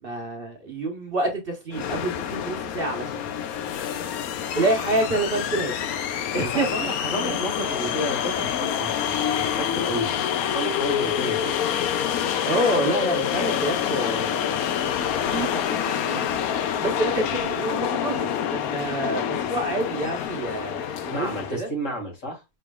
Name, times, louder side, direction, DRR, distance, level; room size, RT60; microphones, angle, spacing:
voice 1, 0.0-3.2 4.5-5.7 6.3-6.7 7.2-7.4 12.5-16.3 16.8-21.7, right 2 dB, 45° right, 1.2 m, -28 dB
sound 1, 1.7-21.6, left 9 dB, 80° left, 1.1 m, -27 dB
voice 2, 6.4-11.6 21.1-22.4, right 1 dB, 60° left, 2.2 m, -32 dB
5.5 x 3.2 x 2.2 m
omnidirectional pair, 1.5 m